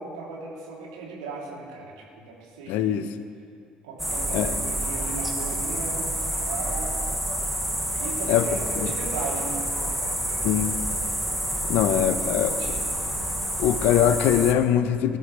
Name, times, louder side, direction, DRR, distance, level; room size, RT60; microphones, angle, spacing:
voice 1, 0.0-3.0 3.8-6.9 7.9-10.5 11.8-12.9, right 4 dB, 70° right, -3 dB, 3.2 m, -37 dB
voice 2, 2.7-3.1 4.3-4.5 8.3-8.5 10.4-10.8 11.7-12.5 13.6-15.2, left 10 dB, 60° left, 12 dB, 0.8 m, -22 dB
sound 1, 4.0-14.5, right 1 dB, 5° right, 2.3 m, -28 dB
25.0 x 12.0 x 3.4 m, 2.3 s
figure-of-eight pair, 50°, 4 cm